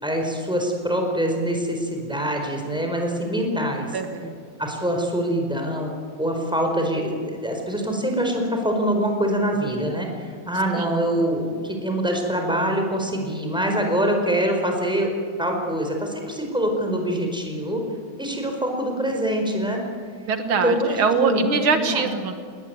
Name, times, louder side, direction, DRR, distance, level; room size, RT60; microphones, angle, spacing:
voice 1, 0.0-4.0 4.6-5.9 6.2-15.1 15.4-17.8 18.2-19.8 20.6-22.1, right 1 dB, ahead, 2 dB, 4.6 m, -24 dB
voice 2, 3.9-4.3 10.8-10.9 20.3-22.3, right 5 dB, 80° right, 7 dB, 2.3 m, -23 dB
20.0 x 20.0 x 9.6 m, 2.1 s
omnidirectional pair, 2.2 m